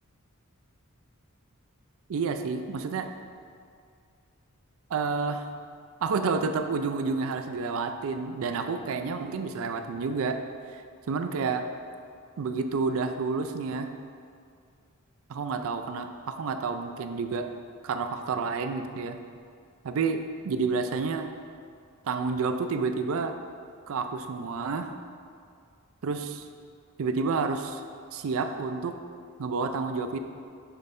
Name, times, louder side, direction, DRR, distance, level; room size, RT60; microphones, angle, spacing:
voice 1, 2.1-3.1 4.9-5.5 6.0-10.4 10.7-10.8 11.1-11.7 12.4-13.9 15.3-17.5 17.8-19.2 19.8-21.3 22.0-23.3 23.9-24.9 26.0-26.4 27.0-27.8 28.1-29.0 29.4-30.2, right 4 dB, 65° right, 7 dB, 0.4 m, -29 dB
6.2 x 3.2 x 5.2 m, 2.3 s
head